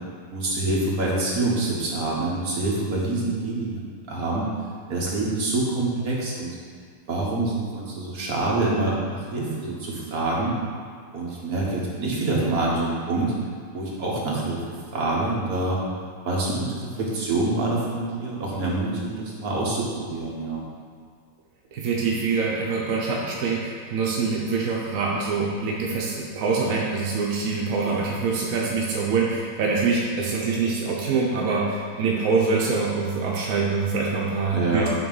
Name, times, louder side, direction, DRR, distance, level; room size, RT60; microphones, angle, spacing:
voice 1, 0.3-3.8 4.1-4.5 4.9-6.6 7.1-10.6 11.1-13.3 13.7-14.6 14.9-15.8 16.2-20.6 34.5-34.9, right 2 dB, 45° right, -4 dB, 1.6 m, -26 dB
voice 2, 21.7-34.9, right 4 dB, 65° right, -3 dB, 0.8 m, -25 dB
8.8 x 3.2 x 5.5 m, 2.1 s
omnidirectional pair, 2.4 m